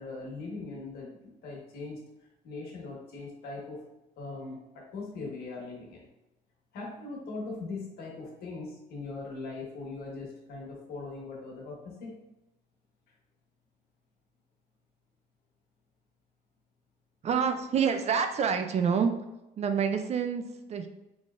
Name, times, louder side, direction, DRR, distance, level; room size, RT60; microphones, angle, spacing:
voice 1, 0.0-2.0 2.4-3.8 4.2-6.1 6.7-12.1, left 3 dB, 70° left, -2 dB, 1.5 m, -40 dB
voice 2, 17.2-19.1 19.6-20.9, right 6 dB, 40° right, 7 dB, 0.4 m, -27 dB
4.1 x 3.2 x 2.4 m, 0.95 s
cardioid pair, 110°, 17 cm